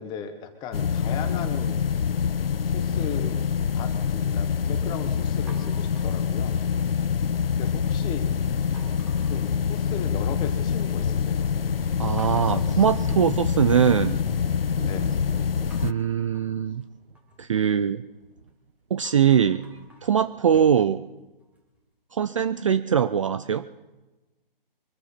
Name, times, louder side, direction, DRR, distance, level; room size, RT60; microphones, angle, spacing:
voice 1, 0.0-1.9 2.6-3.5 3.7-6.6 7.6-8.3 9.3-11.4 12.4-12.8 14.8-15.1 20.5-20.7, left 7 dB, 15° left, 8 dB, 1.3 m, -37 dB
sound 1, 0.7-15.9, left 7 dB, 75° left, 0.7 m, -25 dB
sound 2, 5.5-7.0 7.3-7.9 8.7-10.3 10.6-11.2 11.5-11.6 12.2-14.3 15.7-18.5 18.9-21.8, right 1 dB, 5° right, 2.2 m, -54 dB
Thunder, 10.7-19.4, right 5 dB, 75° right, 1.3 m, -43 dB
voice 2, 12.0-14.2 15.8-16.8 17.4-18.0 18.9-19.6 20.0-21.0 22.1-23.7, right 8 dB, 35° right, 13 dB, 0.4 m, -22 dB
24.0 x 14.0 x 4.3 m, 1.1 s
figure-of-eight pair, 145°, 29 cm